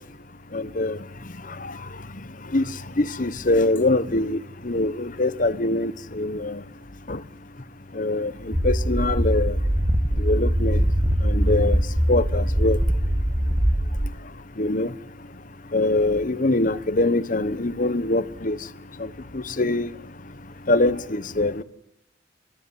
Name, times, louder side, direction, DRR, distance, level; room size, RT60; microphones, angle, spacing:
voice 1, 0.5-1.0 2.5-2.6 3.0-4.4 4.6-6.6 7.1-7.2 8.0-8.3 8.6-9.5 10.2-10.8 11.2-11.8 12.1-12.8 14.6-14.9 15.7-18.6 19.3-19.9 20.7-21.6, left 2 dB, 45° left, 1.1 m, -23 dB
sound 1, 8.5-14.1, equal, 15° right, 1.2 m, -22 dB
30.0 x 14.0 x 9.8 m
head